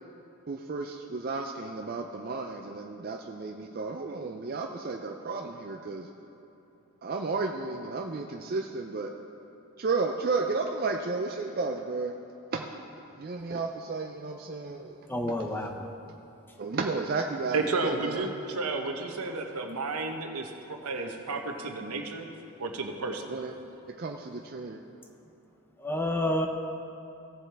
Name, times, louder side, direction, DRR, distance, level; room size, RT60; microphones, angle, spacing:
voice 1, 0.5-6.1 7.0-9.1 9.8-12.1 12.5-12.7 13.2-15.0 15.5-15.7 16.6-18.3 23.3-23.5 24.0-24.8, right 3 dB, 40° right, 2 dB, 0.4 m, -33 dB
voice 2, 15.1-15.9 25.8-26.5, left 1 dB, 10° left, 4 dB, 0.5 m, -29 dB
voice 3, 17.5-22.3 22.6-23.3, right 3 dB, 85° right, 3 dB, 1.0 m, -32 dB
16.5 x 7.3 x 3.4 m, 3.0 s
head